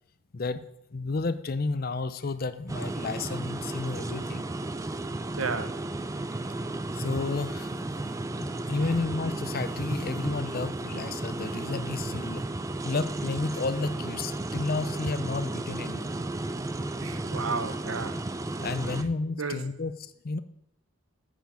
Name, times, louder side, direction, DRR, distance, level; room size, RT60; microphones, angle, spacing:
voice 1, 0.9-4.5 6.9-7.7 8.3-12.4 12.8-16.1 18.6-20.4, left 3 dB, 45° left, 0.5 m, -31 dB
sound 1, 2.7-19.0, right 2 dB, 15° right, 0.4 m, -34 dB
voice 2, 5.4-5.9 8.8-8.9 17.0-18.3 19.4-19.7, right 4 dB, 80° right, 0.9 m, -33 dB
9.0 x 5.1 x 7.0 m
head